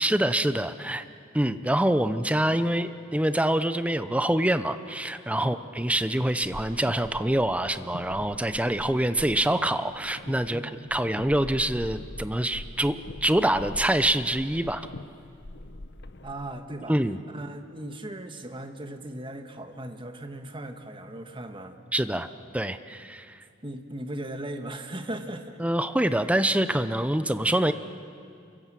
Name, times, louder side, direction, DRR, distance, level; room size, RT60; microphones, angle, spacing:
voice 1, 0.0-1.0 1.3-14.9 16.9-17.2 21.9-22.3 22.5-23.4 25.6-27.7, right 1 dB, 5° right, 11 dB, 0.7 m, -25 dB
sound 1, 5.9-16.6, left 1 dB, 60° left, 1.0 m, -43 dB
voice 2, 10.5-10.8 16.2-17.0 17.3-21.8 23.6-25.6, right 1 dB, 25° right, 6 dB, 1.6 m, -38 dB
28.0 x 24.0 x 7.6 m, 2.4 s
head